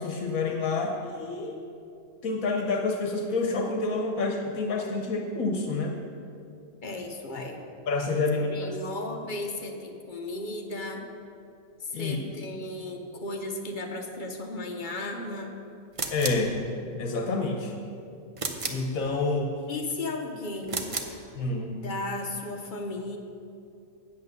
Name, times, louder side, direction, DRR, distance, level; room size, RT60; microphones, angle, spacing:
voice 1, 0.0-1.6 2.2-5.9 7.9-8.8 11.9-12.2 16.1-16.6 17.0-17.7 18.7-19.5 21.4-21.8, left 3 dB, 75° left, 2 dB, 1.3 m, -28 dB
voice 2, 6.8-7.6 8.3-11.0 11.8-15.5 19.7-20.9 21.8-23.2, left 2 dB, 40° left, 3 dB, 1.0 m, -35 dB
sound 1, 15.9-16.5 18.4-18.9 20.6-21.2, right 4 dB, 35° right, 0.5 m, -32 dB
8.4 x 8.0 x 6.6 m, 2.6 s
omnidirectional pair, 1.5 m